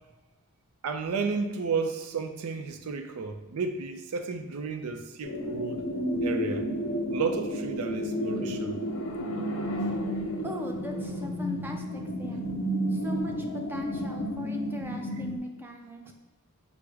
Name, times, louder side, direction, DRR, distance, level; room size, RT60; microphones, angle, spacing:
voice 1, 0.8-5.9 6.2-6.7 7.1-8.8 16.1-16.2, right 5 dB, 85° right, 0.4 m, -32 dB
sound 1, 5.2-15.4, equal, 55° left, 0.5 m, -31 dB
voice 2, 10.4-12.5 12.9-16.1, left 1 dB, 10° right, 0.4 m, -39 dB
4.7 x 2.1 x 4.6 m
head